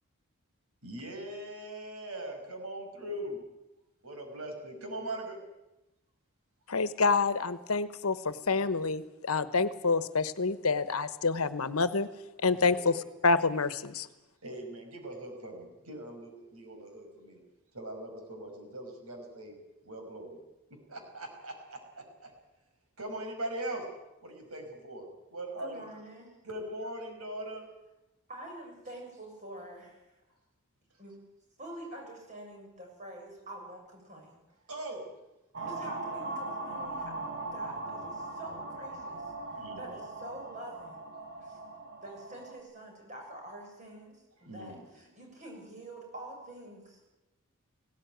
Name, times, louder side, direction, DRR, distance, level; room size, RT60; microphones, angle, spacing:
voice 1, 0.8-3.4 4.0-5.4 12.5-12.9 14.4-17.4 17.7-19.5 19.8-20.4 20.9-21.8 22.2-22.3 23.0-23.9 24.2-25.8 26.4-27.7 34.7-35.1 39.6-39.9 44.4-44.8, right 1 dB, 85° right, 3 dB, 5.7 m, -40 dB
voice 2, 6.7-12.1 12.4-13.0 13.2-14.1, left 4 dB, 85° left, 13 dB, 1.1 m, -27 dB
voice 3, 25.6-26.3 28.3-30.0 31.0-31.2 31.6-34.4 35.6-39.2 39.5-41.0 41.4-41.6 42.0-47.2, right 1 dB, 35° right, 0 dB, 7.0 m, -46 dB
sound 1, 35.5-42.6, right 2 dB, 55° right, 4.0 m, -39 dB
18.5 x 17.5 x 9.3 m, 0.96 s
head